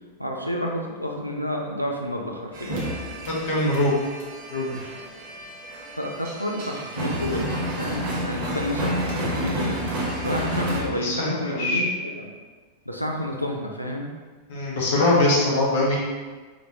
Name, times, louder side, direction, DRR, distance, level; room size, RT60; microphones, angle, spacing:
voice 1, 0.2-2.8 6.0-7.5 7.8-8.9 9.2-9.8 10.2-11.9 12.2-12.3 12.9-14.1, equal, 90° right, 1 dB, 0.6 m, -30 dB
sound 1, 2.5-10.8, equal, 50° right, 1.3 m, -30 dB
voice 2, 3.3-3.9 4.5-4.8 10.9-11.8 14.5-16.0, left 2 dB, 55° left, -5 dB, 1.4 m, -22 dB
4.9 x 3.5 x 3.0 m, 1.4 s
figure-of-eight pair, 90°, 0 cm